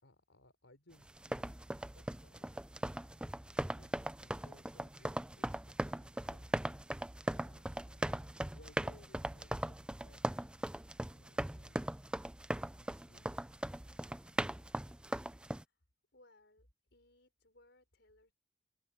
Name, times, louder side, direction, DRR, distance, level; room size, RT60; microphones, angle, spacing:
voice 1, 0.0-2.5 3.6-6.6 7.3-10.8 11.1-12.1 12.7-13.3, left 1 dB, 70° left, 3.9 m, -65 dB
sound 1, 1.1-15.6, right 1 dB, 5° right, 0.3 m, -39 dB
voice 2, 16.1-18.3, left 2 dB, 55° left, 5.9 m, -66 dB
open air
head